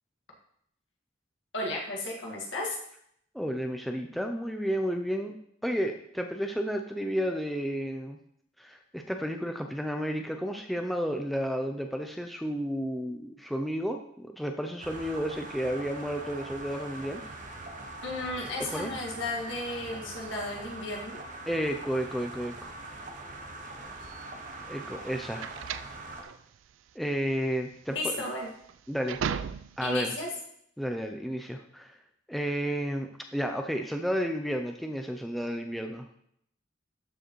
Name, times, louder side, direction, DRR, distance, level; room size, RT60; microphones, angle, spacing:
voice 1, 1.5-2.8 18.0-21.2 27.9-28.5 29.8-30.3, left 2 dB, 70° left, -2 dB, 1.7 m, -34 dB
voice 2, 3.3-5.3 5.6-8.2 8.6-17.2 18.7-18.9 21.5-22.7 24.7-25.5 27.0-28.1 28.9-29.3 29.8-30.1 30.8-31.9 32.3-36.1, equal, ahead, 3 dB, 0.4 m, -32 dB
sound 1, 14.8-26.2, right 2 dB, 40° right, 0.8 m, -43 dB
sound 2, 24.0-30.0, right 7 dB, 75° right, 0.3 m, -37 dB
13.0 x 4.8 x 3.0 m, 0.72 s
head